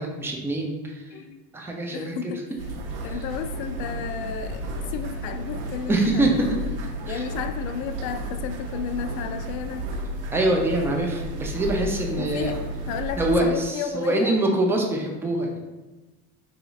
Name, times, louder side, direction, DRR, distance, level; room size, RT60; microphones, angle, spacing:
voice 1, 0.0-1.1 1.5-2.2 3.1-3.2 5.9-6.6 7.1-7.2 10.3-12.5 13.2-15.6, right 1 dB, 5° right, 1 dB, 0.4 m, -24 dB
voice 2, 1.9-2.7 3.0-6.5 7.1-9.9 12.2-12.6 12.9-14.3, left 7 dB, 65° left, 8 dB, 0.5 m, -33 dB
sound 1, 2.6-13.4, right 1 dB, 65° right, 0.7 m, -32 dB
4.1 x 2.8 x 2.4 m, 1.1 s
hypercardioid pair, 85°, 44 cm